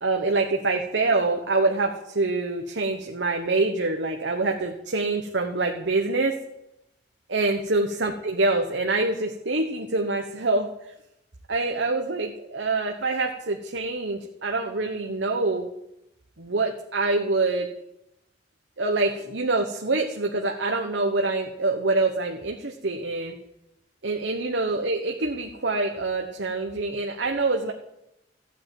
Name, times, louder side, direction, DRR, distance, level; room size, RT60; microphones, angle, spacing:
voice 1, 0.0-6.3 7.3-10.9 11.5-15.7 16.4-17.7 18.8-23.4 24.0-27.7, right 3 dB, 80° right, 3 dB, 1.3 m, -25 dB
14.5 x 8.7 x 9.2 m, 0.84 s
head